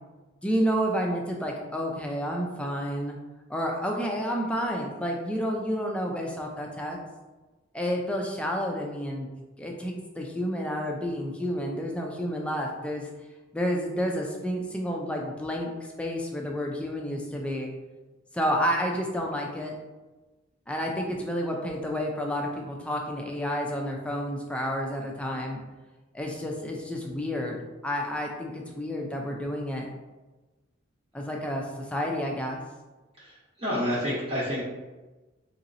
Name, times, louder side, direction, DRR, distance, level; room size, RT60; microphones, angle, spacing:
voice 1, 0.4-3.2 3.5-7.0 7.7-9.3 9.6-13.1 13.5-17.7 18.3-19.7 20.7-25.6 26.1-27.6 27.8-29.9 31.1-32.6, equal, 5° left, 0 dB, 0.4 m, -30 dB
voice 2, 33.6-34.6, equal, 30° right, -8 dB, 0.8 m, -28 dB
3.9 x 2.8 x 2.6 m, 1.2 s
head